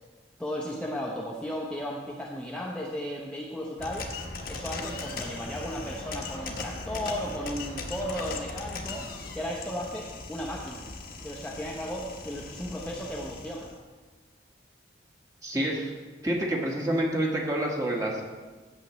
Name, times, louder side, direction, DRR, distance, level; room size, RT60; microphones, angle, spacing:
voice 1, 0.4-4.1 4.5-9.1 9.3-10.9 11.2-13.7, equal, 5° left, -4 dB, 0.8 m, -35 dB
sound 1, 3.8-13.7, left 3 dB, 50° left, 1.1 m, -39 dB
voice 2, 15.4-15.9 16.2-18.2, right 1 dB, 20° right, -2 dB, 1.5 m, -28 dB
15.5 x 7.3 x 3.1 m, 1.4 s
head